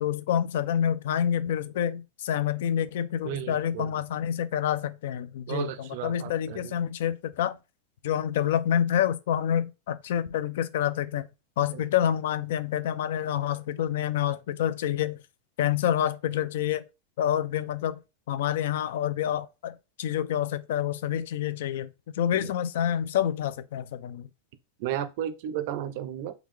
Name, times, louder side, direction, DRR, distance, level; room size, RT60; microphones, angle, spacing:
voice 1, 0.0-7.6 8.0-11.3 11.6-15.2 15.6-16.8 17.2-18.0 18.3-24.3, left 10 dB, 65° left, 0.3 m, -28 dB
voice 2, 3.2-3.9 5.5-6.8 11.7-11.8 22.4-22.5 24.8-26.3, right 11 dB, 50° right, 0.4 m, -33 dB
3.7 x 2.3 x 3.2 m
supercardioid pair, 170°, 0 cm